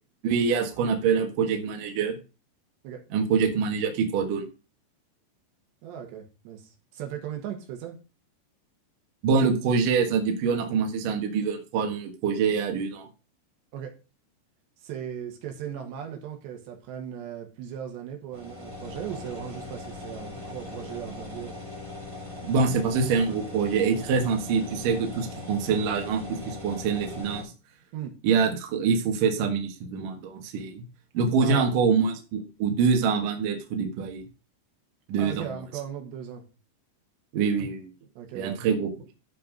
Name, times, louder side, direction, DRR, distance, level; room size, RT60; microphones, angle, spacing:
voice 1, 0.2-2.2 3.1-4.4 9.2-13.1 22.4-27.5 28.2-30.8 31.1-34.2 35.1-35.5 37.3-37.9 38.4-38.9, right 5 dB, 60° right, 3 dB, 2.7 m, -25 dB
voice 2, 5.8-8.0 13.7-13.9 14.8-21.6 27.9-28.1 31.4-31.7 35.2-36.4 38.2-38.6, right 9 dB, 75° right, 3 dB, 3.7 m, -37 dB
sound 1, 18.3-27.4, left 2 dB, 20° right, 0.7 m, -40 dB
13.5 x 4.7 x 5.3 m, 0.32 s
omnidirectional pair, 5.2 m